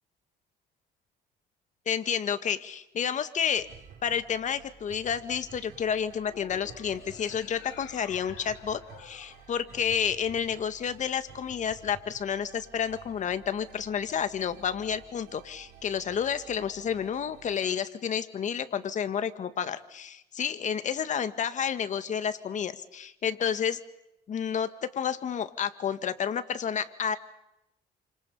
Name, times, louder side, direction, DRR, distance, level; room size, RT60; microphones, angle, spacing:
voice 1, 1.9-3.7 4.0-23.8 24.3-24.7 25.0-27.2, left 8 dB, 45° left, 10 dB, 1.9 m, -30 dB
sound 1, 3.6-17.6, right 7 dB, 75° right, 6.2 m, -52 dB
sound 2, 6.2-10.5, left 9 dB, 85° left, 4.4 m, -50 dB
29.0 x 26.5 x 5.6 m, 0.86 s
cardioid pair, 110°, 17 cm